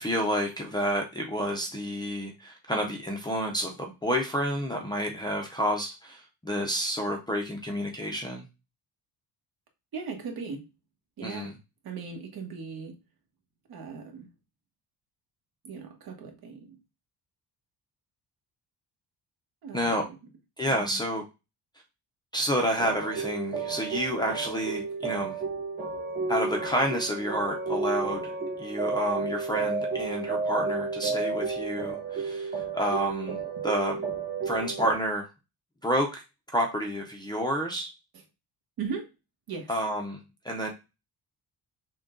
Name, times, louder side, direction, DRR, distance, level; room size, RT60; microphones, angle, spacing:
voice 1, 0.0-8.4 11.2-11.5 19.7-20.0 20.6-21.2 22.3-25.4 26.3-33.4 33.6-34.0 34.4-35.3 35.8-36.2 36.5-37.9 39.7-40.7, equal, 10° left, -1 dB, 0.6 m, -29 dB
voice 2, 9.9-10.6 11.2-11.5 11.8-12.9 13.7-14.3 15.6-16.8 19.6-20.0 20.7-21.0 38.1-38.2 38.8-39.1 39.5-39.7, right 5 dB, 60° right, 3 dB, 1.3 m, -38 dB
sound 1, 22.8-34.9, right 4 dB, 25° right, 1.5 m, -32 dB
6.2 x 2.3 x 3.7 m, 0.27 s
cardioid pair, 170°, 42 cm